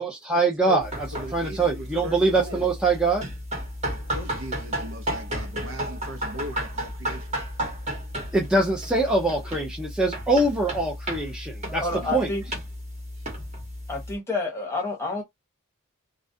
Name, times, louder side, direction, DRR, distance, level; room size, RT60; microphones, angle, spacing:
voice 1, 0.0-1.1 1.3-3.3 8.3-11.9 12.1-12.3, right 2 dB, 5° right, 0.5 m, -23 dB
sound 1, 0.8-14.2, equal, 30° right, 1.0 m, -33 dB
voice 2, 1.1-2.7 3.9-7.4 11.9-12.2, left 1 dB, 60° right, 0.6 m, -38 dB
voice 3, 11.7-12.4 13.9-15.2, left 3 dB, 15° left, 0.8 m, -29 dB
2.3 x 2.1 x 2.5 m
head